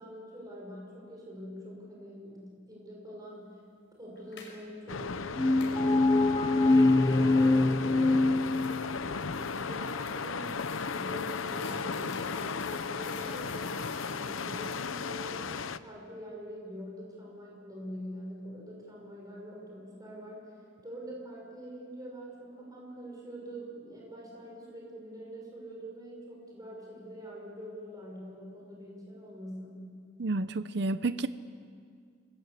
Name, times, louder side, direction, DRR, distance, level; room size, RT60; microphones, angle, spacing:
voice 1, 0.0-3.6 4.0-10.5 10.9-29.9, equal, 20° right, -2 dB, 5.8 m, -44 dB
sound 1, 4.2-4.6 5.6-5.8 8.0-15.1, left 5 dB, 65° left, 5.5 m, -52 dB
sound 2, 4.9-15.8, left 5 dB, 85° left, 0.8 m, -35 dB
sound 3, 5.4-9.1, left 2 dB, 20° left, 0.7 m, -24 dB
voice 2, 30.2-31.3, right 2 dB, 55° right, 12 dB, 0.6 m, -30 dB
28.5 x 20.5 x 8.3 m, 2.1 s
head